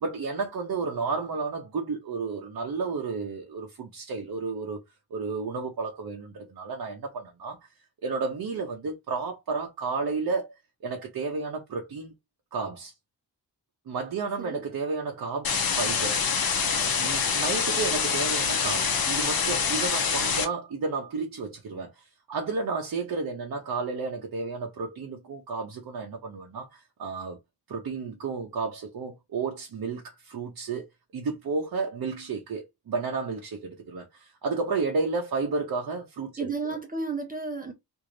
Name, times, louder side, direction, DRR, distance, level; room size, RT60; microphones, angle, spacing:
voice 1, 0.0-4.8 5.1-7.7 8.0-10.5 10.8-12.1 12.5-12.9 13.9-16.2 17.0-27.4 27.7-36.5, right 4 dB, 60° right, 0.8 m, -32 dB
sound 1, 15.4-20.4, left 6 dB, 60° left, 0.9 m, -26 dB
voice 2, 36.4-37.7, right 4 dB, 20° right, 0.7 m, -32 dB
3.2 x 2.7 x 3.8 m
wide cardioid pair, 160°, 40 cm